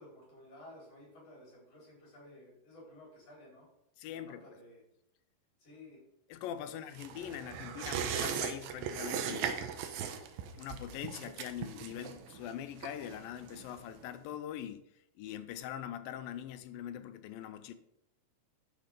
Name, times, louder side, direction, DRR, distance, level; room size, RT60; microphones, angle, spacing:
voice 1, 0.0-3.7 4.1-4.8 5.6-6.0 6.6-6.8, left 1 dB, 45° left, 5.7 m, -54 dB
voice 2, 4.0-4.4 6.3-9.8 10.6-14.8 15.2-17.8, left 10 dB, 85° left, 2.5 m, -42 dB
sound 1, 6.9-14.0 14.3-14.4, right 8 dB, 90° right, 2.7 m, -39 dB
12.0 x 5.9 x 5.1 m
omnidirectional pair, 4.0 m